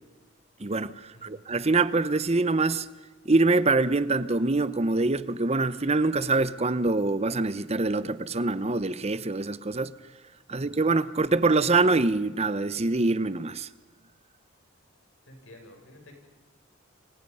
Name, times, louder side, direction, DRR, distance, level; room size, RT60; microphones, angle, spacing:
voice 1, 0.6-2.9 3.2-9.9 10.5-13.7, right 3 dB, 30° right, 0.9 m, -24 dB
voice 2, 1.1-1.5 10.5-10.9 15.3-16.2, left 1 dB, 70° left, 7.2 m, -52 dB
30.0 x 25.0 x 5.6 m
head